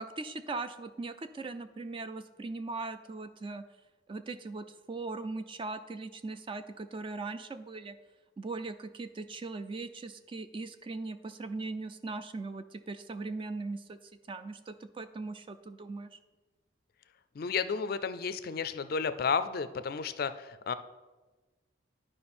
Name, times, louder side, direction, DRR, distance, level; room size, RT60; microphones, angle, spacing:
voice 1, 0.0-3.6 4.1-8.0 8.4-14.0 14.3-16.2, right 3 dB, 25° right, 10 dB, 0.3 m, -39 dB
voice 2, 17.4-20.7, left 5 dB, 50° left, 12 dB, 0.4 m, -32 dB
10.5 x 5.0 x 4.3 m, 1.2 s
head